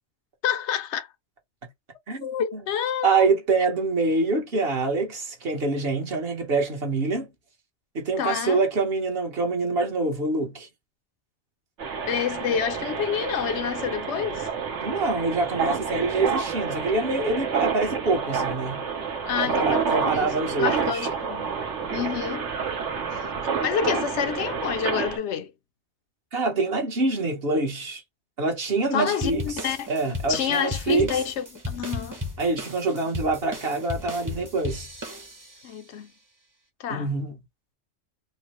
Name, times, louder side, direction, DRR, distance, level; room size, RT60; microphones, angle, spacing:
voice 1, 0.4-1.1 2.2-3.3 8.2-8.6 12.1-14.5 19.2-21.5 21.9-22.5 23.1-23.2 23.6-25.5 28.9-29.9 30.3-32.2 35.6-36.1 36.8-37.1, left 8 dB, 75° left, 0.9 m, -28 dB
voice 2, 2.1-2.6 3.0-7.3 7.9-10.7 14.8-18.8 19.4-21.1 26.3-28.0 28.4-29.6 29.9-31.1 32.4-34.9 36.9-37.4, right 3 dB, 55° right, 1.2 m, -25 dB
sound 1, 11.8-25.2, right 6 dB, 85° right, 1.3 m, -29 dB
sound 2, 29.2-35.7, left 2 dB, 20° right, 0.7 m, -35 dB
4.0 x 2.0 x 3.0 m
omnidirectional pair, 1.2 m